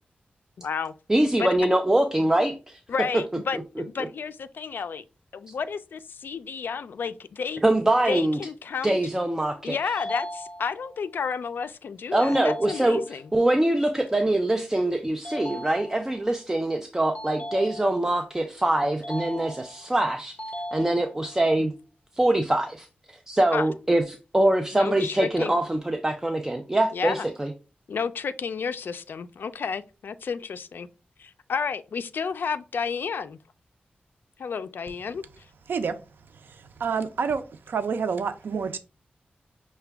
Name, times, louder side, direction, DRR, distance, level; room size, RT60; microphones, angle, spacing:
voice 1, 0.6-0.9 1.4-1.5 2.9-5.0 5.3-7.6 8.1-9.0 9.6-13.2 23.5-23.7 24.7-25.6 26.9-27.3 27.9-30.9 31.2-33.4 34.4-35.2, left 6 dB, 75° left, 0.3 m, -31 dB
voice 2, 1.1-2.8 7.6-8.4 8.8-9.8 12.1-20.4 20.7-21.7 22.2-22.9 23.3-27.5, right 1 dB, 15° right, 0.4 m, -23 dB
sound 1, 10.0-11.0 12.2-13.2 15.2-16.3 17.1-18.2 19.0-19.9 20.4-21.4, equal, 45° left, 0.7 m, -38 dB
voice 3, 36.8-38.8, right 6 dB, 90° right, 0.4 m, -28 dB
5.7 x 2.2 x 3.4 m
wide cardioid pair, 105°, 3 cm